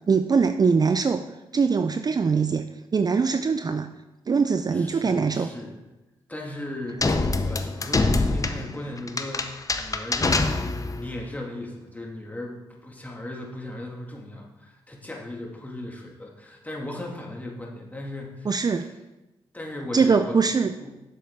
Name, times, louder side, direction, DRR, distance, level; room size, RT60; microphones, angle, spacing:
voice 1, 0.1-1.2 1.5-3.9 4.3-5.5 18.5-18.8 19.9-20.7, right 5 dB, 35° right, 8 dB, 0.4 m, -22 dB
voice 2, 4.7-5.8 6.3-10.6 11.0-12.6 12.8-18.9 19.5-20.5 20.8-20.9, left 1 dB, 15° left, -1 dB, 2.0 m, -37 dB
sound 1, 7.0-11.1, left 3 dB, 30° left, 0.7 m, -25 dB
7.2 x 6.7 x 3.7 m, 1.0 s
supercardioid pair, 50°, 11 cm